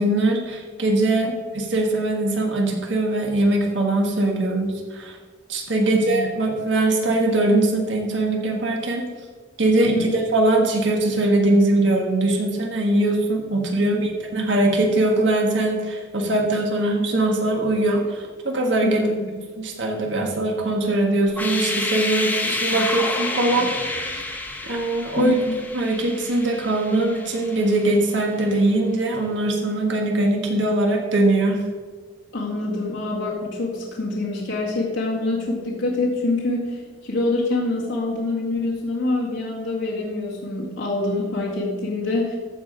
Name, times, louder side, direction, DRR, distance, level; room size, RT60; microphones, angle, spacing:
voice 1, 0.0-5.2 5.5-9.0 9.6-19.0 19.6-24.2 24.6-25.3 25.7-31.6, right 2 dB, 70° right, 1 dB, 1.6 m, -21 dB
voice 2, 5.7-6.2 9.7-10.1 18.8-19.3 25.2-25.6 32.3-42.4, left 2 dB, 75° left, -4 dB, 2.0 m, -25 dB
sound 1, 21.3-28.2, left 2 dB, 10° left, 0.8 m, -29 dB
14.0 x 4.8 x 5.1 m, 1.5 s
head